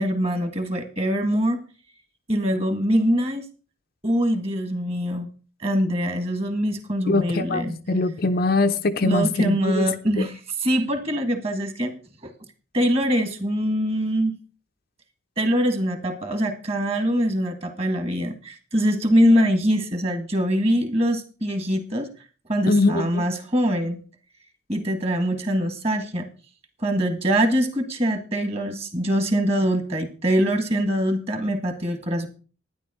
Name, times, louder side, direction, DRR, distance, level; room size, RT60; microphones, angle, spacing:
voice 1, 0.0-1.6 2.3-3.4 4.0-5.3 5.6-7.7 9.0-11.9 12.2-12.3 12.7-14.4 15.4-22.1 22.5-24.0 24.7-26.3 26.8-32.3, equal, 30° right, 1.7 m, -23 dB
voice 2, 7.1-10.3 22.7-23.2, left 3 dB, 45° left, 0.6 m, -22 dB
11.5 x 10.0 x 4.2 m
head